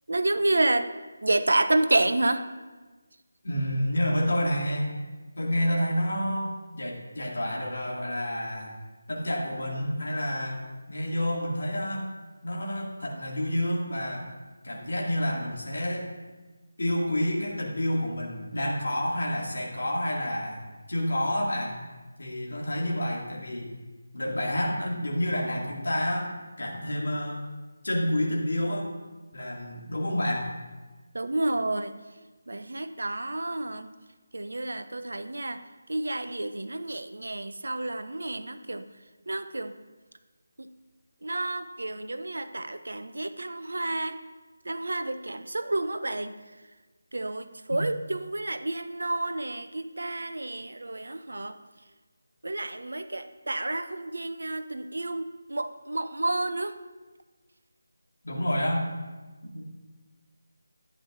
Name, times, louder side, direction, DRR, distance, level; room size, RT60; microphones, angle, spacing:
voice 1, 0.1-0.9 1.2-2.5 31.1-31.9 32.5-33.9 34.3-35.6 35.9-38.8 39.3-39.7 40.6-40.7 41.2-44.2 44.7-46.3 47.1-51.5 52.4-56.7, right 2 dB, 65° right, 10 dB, 0.6 m, -29 dB
voice 2, 3.4-4.9 5.4-8.7 9.1-10.6 10.9-12.1 12.4-14.3 14.6-16.1 16.8-20.6 20.9-21.8 22.2-23.7 24.1-26.3 26.6-27.4 27.8-28.9 29.3-30.5 47.7-47.8 58.2-58.9 59.4-59.8, equal, 60° left, -3 dB, 2.1 m, -29 dB
11.0 x 8.7 x 2.5 m, 1.3 s
figure-of-eight pair, 160°, 0 cm